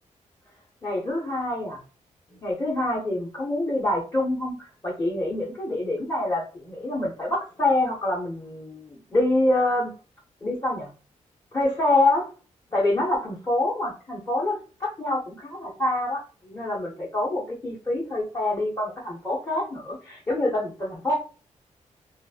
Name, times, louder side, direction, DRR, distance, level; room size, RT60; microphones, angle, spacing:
voice 1, 0.8-1.8 2.3-4.6 4.8-9.9 10.4-10.9 11.5-12.3 12.7-21.1, left 1 dB, 25° left, -5 dB, 1.0 m, -26 dB
2.9 x 2.4 x 2.7 m, 0.35 s
cardioid pair, 95°, 13 cm